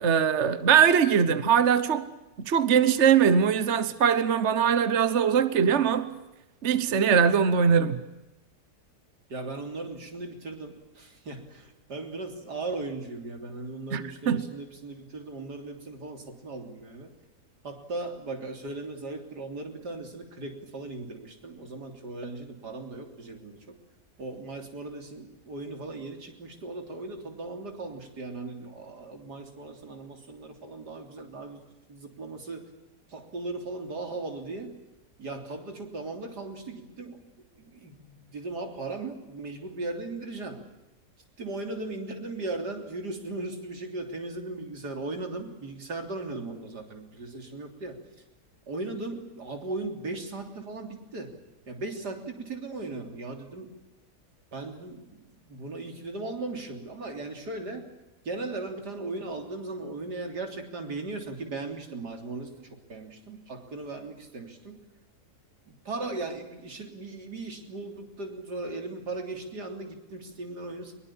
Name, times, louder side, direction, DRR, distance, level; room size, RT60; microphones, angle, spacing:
voice 1, 0.0-2.1 2.4-6.1 6.6-8.0 13.9-14.5, right 7 dB, 50° right, 1.3 m, -22 dB
voice 2, 9.3-17.1 17.6-23.8 24.2-31.6 31.9-32.6 33.1-34.7 35.2-37.2 37.6-40.6 41.4-48.0 48.7-51.4 51.7-53.7 54.5-57.9 58.2-64.8 65.7-70.9, right 2 dB, 80° right, 4.0 m, -37 dB
23.5 x 22.0 x 8.8 m
omnidirectional pair, 1.7 m